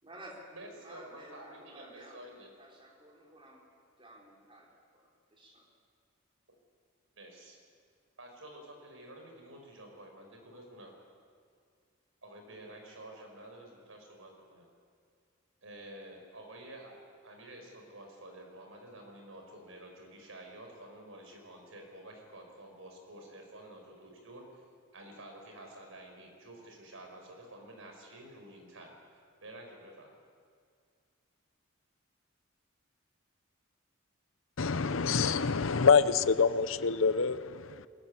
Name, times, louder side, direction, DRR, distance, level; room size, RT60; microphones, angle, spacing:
voice 1, 0.0-0.5 0.8-2.3 2.6-3.7 4.0-5.7, right 1 dB, 25° right, -2 dB, 4.0 m, -53 dB
voice 2, 0.5-2.5 7.2-7.6 8.2-10.9 12.2-14.7 15.6-17.0 17.2-24.6 24.9-28.9 29.4-30.1, right 1 dB, 75° right, 2 dB, 5.1 m, -50 dB
voice 3, 34.6-37.9, left 5 dB, 70° left, 13 dB, 0.8 m, -26 dB
22.5 x 15.0 x 9.7 m, 2.2 s
head